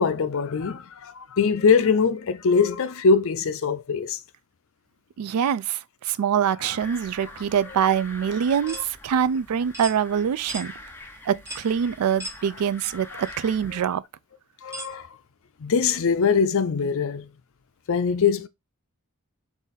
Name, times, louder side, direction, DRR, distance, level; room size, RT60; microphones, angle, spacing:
voice 1, 0.0-4.2 8.6-8.8 13.7-13.8 14.6-15.1 15.6-17.3 17.9-18.5, left 5 dB, 65° left, 0.5 m, -22 dB
voice 2, 5.2-10.7 11.3-14.0, right 8 dB, 85° right, 0.4 m, -24 dB
sound 1, 6.8-13.8, left 1 dB, 10° left, 0.7 m, -44 dB
sound 2, 8.7-8.9 9.7-10.0 10.5-10.7 11.5-11.7 12.2-12.4 13.2-13.3 14.7-14.9, right 1 dB, 10° right, 1.0 m, -36 dB
3.9 x 2.6 x 4.0 m
head